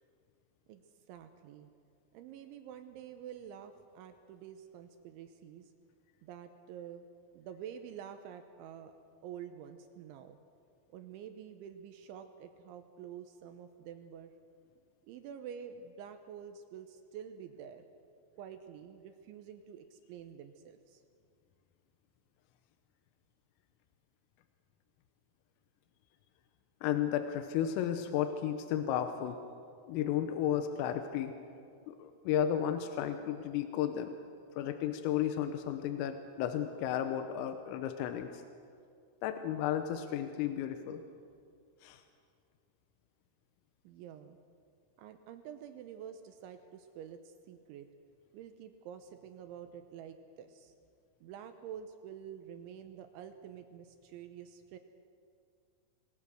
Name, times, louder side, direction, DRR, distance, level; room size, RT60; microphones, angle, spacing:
voice 1, 0.7-1.7 2.1-5.7 6.2-7.1 7.3-8.9 9.2-10.4 10.9-14.3 15.0-17.9 18.4-21.0 43.8-44.4 45.0-47.9 48.3-50.7 51.2-54.8, right 8 dB, 75° right, 7 dB, 3.0 m, -48 dB
voice 2, 26.8-29.4 29.8-31.3 31.9-34.2 34.6-38.4 39.2-41.0 41.8-42.0, left 10 dB, 85° left, 8 dB, 3.6 m, -33 dB
26.5 x 21.0 x 6.4 m, 2.3 s
omnidirectional pair, 5.9 m